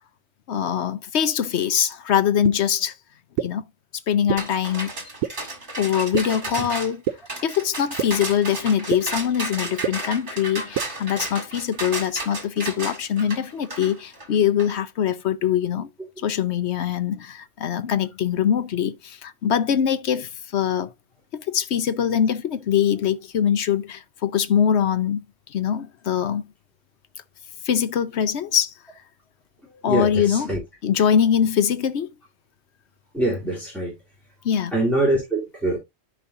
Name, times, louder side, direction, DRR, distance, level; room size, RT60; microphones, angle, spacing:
voice 1, 0.5-2.9 3.4-3.6 4.1-4.9 5.8-7.0 7.4-15.9 16.2-20.9 21.3-25.2 25.5-26.4 27.6-28.7 29.8-30.5 30.8-32.1 34.4-34.7, left 8 dB, 60° left, 1.0 m, -23 dB
sound 1, 2.4-2.5 3.4-3.5 4.3-4.4 5.2-5.3 6.1-6.2 7.1-7.2 8.0-8.1 8.9-9.0 9.8-9.9 10.8-10.9, right 10 dB, 70° right, 0.9 m, -23 dB
sound 2, 4.4-14.7, right 2 dB, 40° right, 2.1 m, -33 dB
voice 2, 29.9-30.6 33.1-33.9 34.7-35.8, right 1 dB, ahead, 3.1 m, -23 dB
13.5 x 4.7 x 2.6 m
omnidirectional pair, 1.4 m